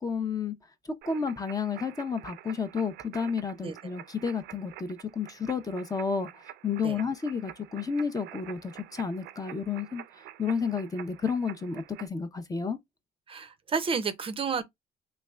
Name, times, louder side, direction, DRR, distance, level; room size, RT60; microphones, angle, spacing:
voice 1, 0.0-0.6 1.1-10.0 10.4-12.8, left 5 dB, 20° left, 0.6 m, -31 dB
sound 1, 1.0-12.1, right 13 dB, 80° right, 0.5 m, -48 dB
voice 2, 13.3-14.6, right 5 dB, 30° right, 0.5 m, -31 dB
3.3 x 3.2 x 2.2 m
cardioid pair, 110°, 17 cm